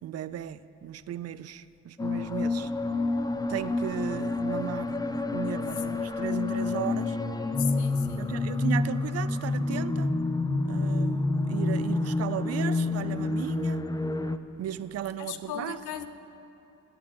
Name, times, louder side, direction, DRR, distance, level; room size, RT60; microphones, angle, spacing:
voice 1, 0.0-2.7 3.5-7.2 8.2-10.1 10.6-13.8 14.6-15.8, right 11 dB, 55° right, 0.5 m, -36 dB
sound 1, 2.0-14.4, left 3 dB, 15° left, 0.5 m, -28 dB
voice 2, 7.6-8.4 15.2-16.1, left 10 dB, 80° left, 0.8 m, -37 dB
19.0 x 8.7 x 5.4 m
cardioid pair, 90°, 30 cm